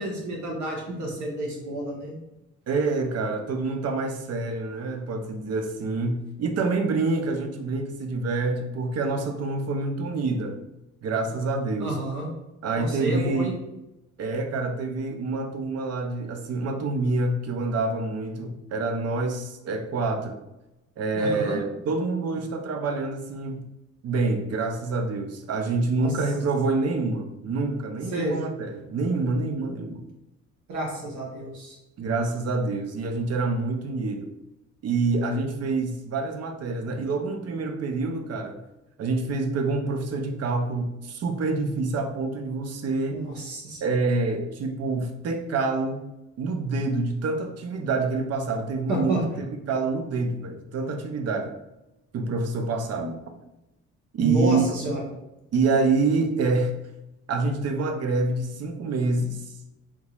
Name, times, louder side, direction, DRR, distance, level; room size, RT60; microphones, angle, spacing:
voice 1, 0.0-2.1 11.8-12.3 12.8-13.5 21.1-21.6 26.0-26.1 28.1-28.4 30.7-31.8 43.1-43.8 48.9-49.2 52.9-53.1 54.2-55.0, right 2 dB, 75° right, -1 dB, 1.2 m, -30 dB
voice 2, 2.7-10.6 11.0-12.0 12.6-13.5 14.2-20.4 21.0-23.7 24.0-30.0 32.0-34.3 34.8-38.6 39.0-43.2 43.8-46.0 46.4-51.5 52.1-53.1 54.1-54.7 55.5-56.7 57.3-59.4, right 3 dB, 55° right, 5 dB, 0.6 m, -27 dB
3.6 x 2.9 x 2.4 m, 0.94 s
cardioid pair, 90°, 30 cm